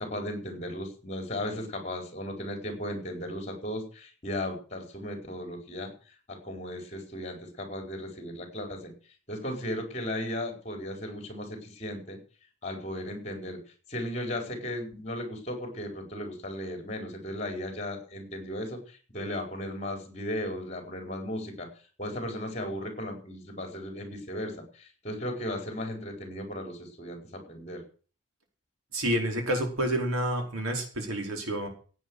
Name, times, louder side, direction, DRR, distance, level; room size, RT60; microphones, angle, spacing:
voice 1, 0.0-5.9 6.3-8.9 9.3-12.2 12.6-13.6 13.9-21.7 22.0-27.8, left 1 dB, 30° left, 3 dB, 4.7 m, -36 dB
voice 2, 28.9-31.7, right 1 dB, 90° right, 2 dB, 5.0 m, -29 dB
15.5 x 9.4 x 6.5 m, 0.38 s
head